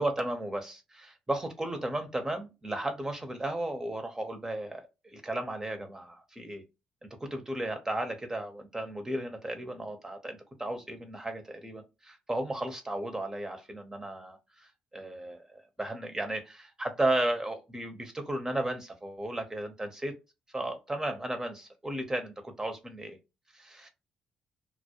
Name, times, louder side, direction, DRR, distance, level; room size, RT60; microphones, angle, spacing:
voice 1, 0.0-6.6 7.2-20.1 20.5-23.2 23.5-23.9, right 1 dB, 20° right, 0.7 m, -34 dB
2.3 x 2.0 x 2.8 m
hypercardioid pair, 50°, 3 cm